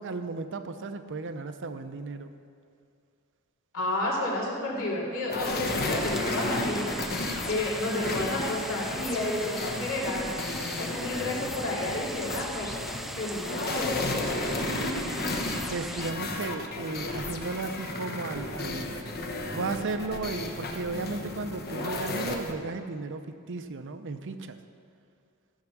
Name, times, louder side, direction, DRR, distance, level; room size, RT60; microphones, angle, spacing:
voice 1, 0.0-2.3 15.3-18.9 19.5-24.6, right 3 dB, 55° right, 9 dB, 0.7 m, -35 dB
voice 2, 3.7-10.4 10.8-12.9 13.2-14.1, left 1 dB, 65° left, -4 dB, 2.6 m, -31 dB
sound 1, 5.3-22.5, left 2 dB, 45° left, 1.1 m, -33 dB
sound 2, 5.6-16.1, equal, ahead, 0.4 m, -39 dB
14.5 x 6.5 x 6.0 m, 2.4 s
head